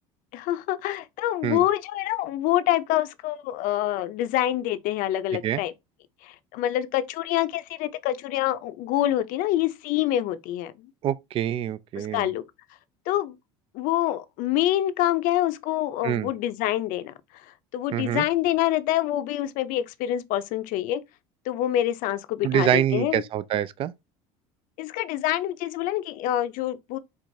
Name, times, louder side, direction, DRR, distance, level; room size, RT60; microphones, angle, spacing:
voice 1, 0.3-5.7 6.2-10.9 12.0-12.4 13.1-13.4 13.7-17.1 17.7-21.0 21.5-23.2 24.8-27.0, left 13 dB, 60° left, 0.5 m, -26 dB
voice 2, 11.0-12.3 16.0-16.3 17.9-18.3 22.4-23.9, right 10 dB, 35° right, 0.4 m, -25 dB
4.6 x 2.4 x 2.7 m
supercardioid pair, 100°, 15 cm